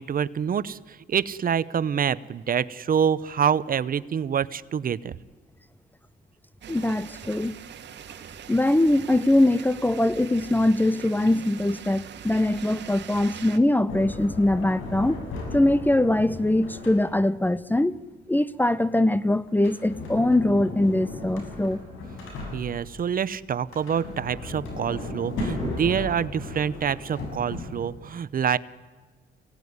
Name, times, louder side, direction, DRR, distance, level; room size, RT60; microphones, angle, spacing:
voice 1, 0.0-5.2 22.5-28.6, right 8 dB, 45° right, 0.8 m, -26 dB
sound 1, 6.6-13.6, right 8 dB, 65° right, 1.8 m, -42 dB
voice 2, 6.7-7.6 8.5-15.2 15.5-18.0 18.3-21.8, left 1 dB, 10° left, 0.7 m, -22 dB
Sliding door, 13.9-17.4 19.5-23.0 23.6-28.0, left 2 dB, 90° left, 7.0 m, -35 dB
25.0 x 17.5 x 9.6 m
cardioid pair, 90°, 20 cm